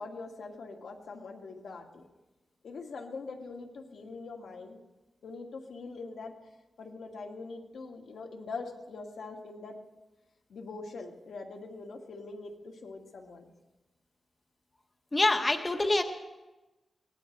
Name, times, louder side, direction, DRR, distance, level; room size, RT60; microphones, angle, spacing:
voice 1, 0.0-2.0 2.6-4.8 5.2-6.3 6.8-9.8 10.5-13.5, left 3 dB, 80° left, 1 dB, 2.2 m, -43 dB
voice 2, 15.1-16.0, left 2 dB, 20° left, 5 dB, 1.1 m, -25 dB
23.0 x 18.5 x 3.3 m, 1.1 s
wide cardioid pair, 175°, 0 cm